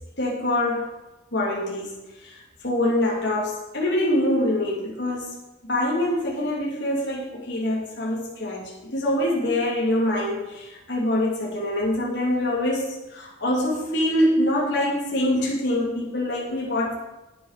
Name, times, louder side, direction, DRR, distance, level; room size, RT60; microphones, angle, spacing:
voice 1, 0.2-0.9 1.3-1.9 2.2-2.4 2.6-5.2 5.6-16.9, left 1 dB, 60° left, -4 dB, 3.0 m, -24 dB
9.5 x 9.4 x 5.1 m, 1.0 s
head